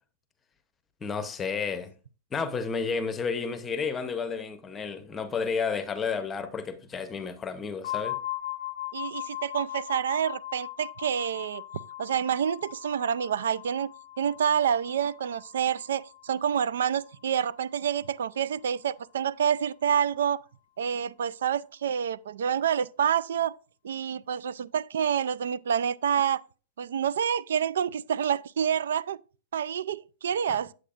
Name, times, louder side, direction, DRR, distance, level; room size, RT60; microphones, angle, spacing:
voice 1, 1.0-1.9 2.3-8.2 30.5-30.6, left 5 dB, 15° left, 0.8 m, -31 dB
sound 1, 7.8-17.5, left 15 dB, 55° left, 0.4 m, -39 dB
voice 2, 8.9-11.6 12.0-13.9 14.2-20.4 20.8-23.5 23.8-26.4 26.8-29.2 29.5-30.7, right 8 dB, 80° right, 0.4 m, -28 dB
8.4 x 7.8 x 2.5 m
hypercardioid pair, 145°, 0 cm